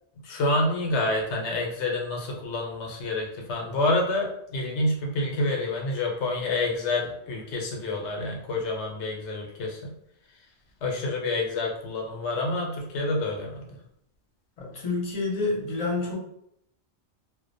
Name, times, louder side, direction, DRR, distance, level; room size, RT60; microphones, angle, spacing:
voice 1, 0.2-9.9 10.8-13.6, left 2 dB, 80° left, 0 dB, 0.9 m, -28 dB
voice 2, 14.6-16.1, left 3 dB, 40° left, -4 dB, 0.8 m, -28 dB
2.4 x 2.1 x 2.5 m, 0.74 s
omnidirectional pair, 1.1 m